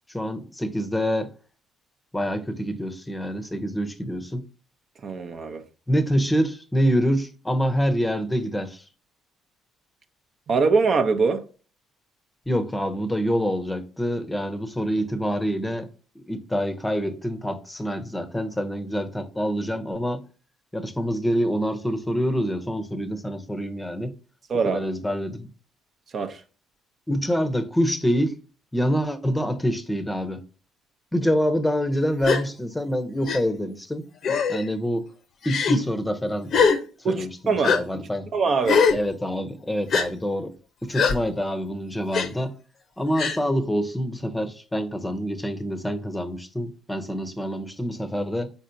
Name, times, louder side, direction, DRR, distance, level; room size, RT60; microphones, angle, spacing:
voice 1, 0.1-1.3 2.1-4.5 5.9-8.8 12.5-15.9 16.3-20.2 20.7-24.1 24.6-25.5 27.1-28.4 28.7-30.4 31.1-34.1 34.5-35.1 35.4-36.5 37.0-38.3 38.9-40.5 40.8-42.5 43.0-48.5, equal, 10° left, 0.7 m, -26 dB
voice 2, 5.0-5.6 10.5-11.4 24.5-24.8 26.1-26.4 37.0-38.1 38.3-38.9, right 4 dB, 50° right, 0.6 m, -23 dB
Gasp, 32.2-32.4 33.3-33.4 34.2-34.6 35.4-35.8 36.5-36.8 37.6-37.8 38.6-39.0 39.9-40.1 40.9-41.2 42.1-42.3 43.2-43.4, left 5 dB, 60° left, 0.7 m, -21 dB
4.4 x 4.1 x 2.6 m
supercardioid pair, 65°, 0 cm